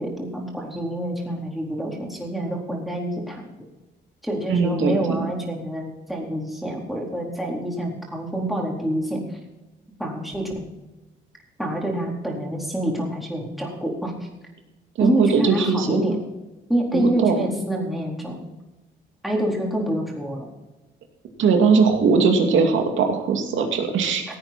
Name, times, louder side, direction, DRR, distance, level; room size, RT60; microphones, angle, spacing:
voice 1, 0.0-3.4 4.2-9.2 10.0-10.7 11.6-14.1 15.0-16.2 16.7-18.4 19.2-20.5, right 1 dB, ahead, -2 dB, 4.1 m, -27 dB
voice 2, 4.5-5.3 15.0-16.0 16.9-17.5 21.4-24.2, right 5 dB, 75° right, 3 dB, 2.6 m, -20 dB
16.5 x 8.9 x 4.4 m, 1.0 s
cardioid pair, 90°, 20 cm